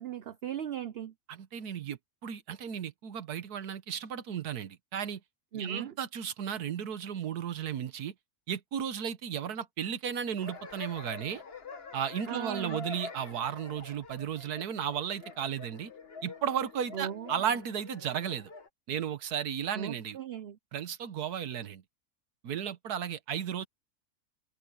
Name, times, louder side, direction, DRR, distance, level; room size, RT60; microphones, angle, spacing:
voice 1, 0.0-1.1 5.5-5.9 12.3-12.8 16.9-17.3 19.7-20.6, right 9 dB, 55° right, 0.8 m, -38 dB
voice 2, 1.3-5.2 5.5-8.1 8.5-11.4 11.9-15.9 16.2-18.5 18.9-20.2 20.7-21.8 22.4-23.7, right 8 dB, 80° right, 1.6 m, -34 dB
sound 1, 10.4-18.7, left 4 dB, 40° left, 1.7 m, -46 dB
omnidirectional pair, 1.6 m